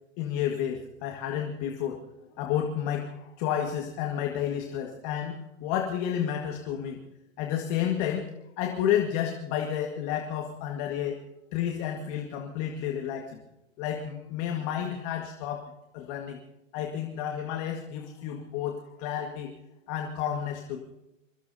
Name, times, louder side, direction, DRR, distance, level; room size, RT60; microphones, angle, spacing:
voice 1, 0.2-2.0 2.4-7.0 7.4-11.2 11.5-13.4 13.8-15.7 15.9-16.4 16.7-19.5 19.9-20.8, left 9 dB, 35° left, 2 dB, 1.8 m, -31 dB
27.5 x 16.5 x 2.8 m, 0.91 s
hypercardioid pair, 130°, 39 cm